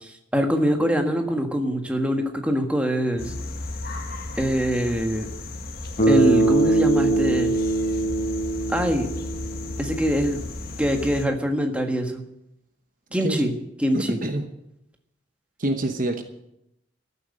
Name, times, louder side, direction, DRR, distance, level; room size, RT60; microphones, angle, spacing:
voice 1, 0.0-3.3 4.4-5.3 6.1-7.5 8.7-9.1 9.8-10.4 10.8-12.2 13.1-13.5 13.8-14.2, equal, 5° right, 4 dB, 1.5 m, -23 dB
sound 1, 3.2-11.3, left 2 dB, 50° left, 1.8 m, -35 dB
Bass guitar, 6.0-10.0, right 2 dB, 35° left, 4.0 m, -22 dB
voice 2, 13.2-13.5 13.9-14.5 15.6-16.2, right 1 dB, 45° right, 7 dB, 1.0 m, -26 dB
14.0 x 8.2 x 9.9 m, 0.83 s
head